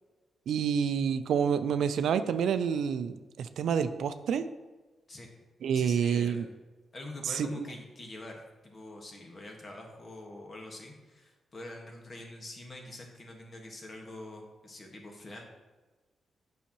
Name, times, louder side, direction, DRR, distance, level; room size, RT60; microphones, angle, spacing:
voice 1, 0.5-4.5 5.6-6.5 7.3-7.7, right 7 dB, 85° right, 11 dB, 0.3 m, -28 dB
voice 2, 5.7-6.4 6.9-15.4, left 1 dB, 40° left, 1 dB, 1.4 m, -45 dB
8.5 x 5.6 x 2.9 m, 1.3 s
cardioid pair, 85°, 0 cm